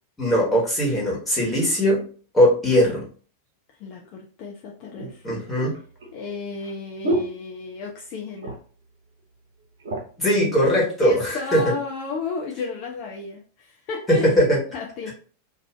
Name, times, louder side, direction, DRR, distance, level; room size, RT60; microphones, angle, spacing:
voice 1, 0.2-2.0 2.3-3.1 5.2-5.8 10.2-11.6 14.1-14.6, equal, 10° left, -5 dB, 1.3 m, -20 dB
voice 2, 3.8-5.4 6.1-8.5 11.0-14.3 14.7-15.1, left 4 dB, 40° left, -1 dB, 0.5 m, -33 dB
sound 1, 4.0-4.1 5.0-8.1 8.4-8.8 9.2-9.3 9.6-10.3 11.0-11.7 12.4-12.5, right 1 dB, 60° right, 0.8 m, -32 dB
2.5 x 2.4 x 3.1 m, 0.41 s
figure-of-eight pair, 90°, 0 cm